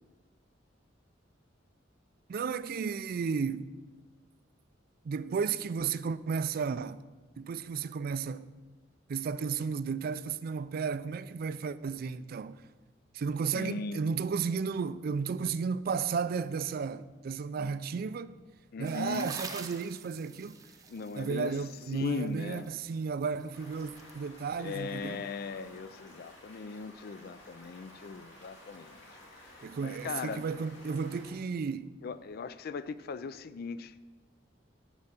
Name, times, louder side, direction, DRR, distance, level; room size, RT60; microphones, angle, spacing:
voice 1, 2.3-3.7 5.0-7.0 7.4-8.5 9.1-12.6 13.1-18.4 18.8-20.6 21.2-25.2 29.6-32.0, right 5 dB, 50° right, 0.3 m, -33 dB
voice 2, 13.5-14.0 17.6-17.7 18.7-19.3 20.9-21.6 21.9-22.7 24.6-29.1 29.5-30.4 32.0-33.9, left 5 dB, 55° left, 0.4 m, -39 dB
sound 1, 18.8-24.1, right 4 dB, 20° right, 0.7 m, -46 dB
Stream, 23.5-31.3, left 1 dB, 85° left, 2.4 m, -53 dB
8.9 x 4.7 x 6.9 m
head